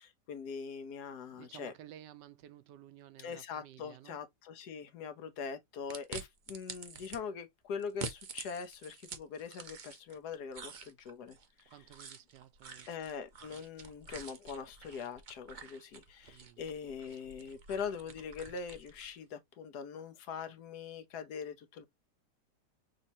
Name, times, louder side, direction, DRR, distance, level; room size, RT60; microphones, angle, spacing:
voice 1, 0.0-1.7 3.2-11.4 12.9-21.9, left 6 dB, 70° left, 1.3 m, -42 dB
voice 2, 1.3-4.2 11.7-12.9 16.3-16.6, right 12 dB, 85° right, 1.2 m, -54 dB
sound 1, 5.9-7.2 7.8-10.2 10.5-19.1, right 5 dB, 55° right, 0.5 m, -48 dB
6.3 x 2.7 x 2.8 m
omnidirectional pair, 1.8 m